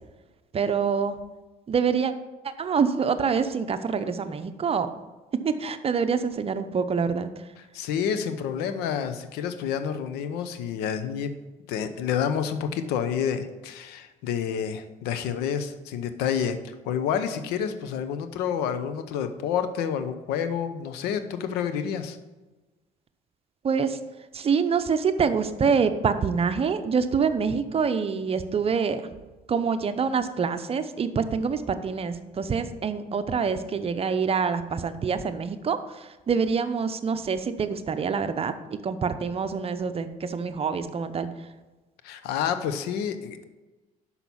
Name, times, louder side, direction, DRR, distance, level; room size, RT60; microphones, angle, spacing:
voice 1, 0.5-1.2 1.7-2.1 2.4-4.9 5.4-7.5 23.6-24.0 24.3-29.0 29.5-41.3, right 6 dB, 35° right, 10 dB, 0.7 m, -26 dB
voice 2, 7.7-11.3 11.7-22.2 42.0-43.4, left 8 dB, 80° left, 10 dB, 0.8 m, -29 dB
6.0 x 5.7 x 7.1 m, 1.2 s
supercardioid pair, 80°, 16 cm